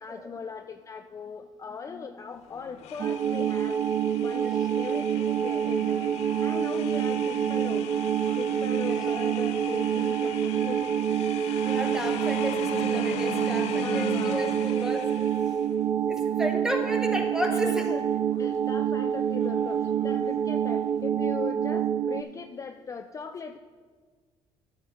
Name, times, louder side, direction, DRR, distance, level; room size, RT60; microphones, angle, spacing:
voice 1, 0.0-3.8 4.2-6.2 6.4-7.9 8.4-10.9 13.7-14.4 17.5-18.0 18.4-23.6, left 5 dB, 30° left, 8 dB, 0.4 m, -39 dB
sound 1, 2.3-15.9 16.2-21.1, left 11 dB, 85° left, 0.5 m, -41 dB
sound 2, 3.0-22.2, right 9 dB, 50° right, 0.4 m, -27 dB
voice 2, 4.4-4.7 8.9-9.0 11.6-15.0 16.1-17.8 22.0-22.2, equal, 5° right, 3 dB, 1.3 m, -33 dB
10.0 x 5.8 x 5.4 m, 1.5 s
cardioid pair, 90°, 11 cm